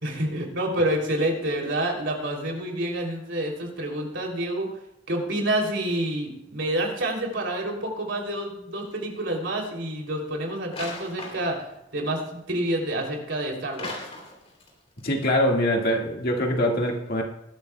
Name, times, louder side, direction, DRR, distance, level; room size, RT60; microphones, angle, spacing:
voice 1, 0.0-4.7 5.1-11.6 11.9-13.9, right 1 dB, 65° right, 1 dB, 3.1 m, -28 dB
sound 1, 8.8-9.0 10.7-11.7 13.7-14.7 15.0-15.1, left 2 dB, 30° left, 3.2 m, -38 dB
voice 2, 15.0-17.2, left 1 dB, 50° left, 1 dB, 1.9 m, -23 dB
20.5 x 12.0 x 2.3 m, 0.83 s
head